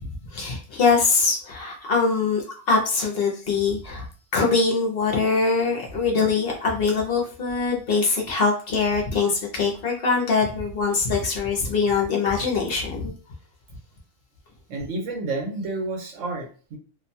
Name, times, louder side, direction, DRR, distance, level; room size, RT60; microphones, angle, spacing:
voice 1, 0.0-4.1 4.3-13.1, left 4 dB, 55° left, -1 dB, 0.8 m, -23 dB
voice 2, 14.7-16.8, right 2 dB, 80° right, 2 dB, 1.1 m, -30 dB
2.6 x 2.2 x 2.6 m, 0.38 s
omnidirectional pair, 1.3 m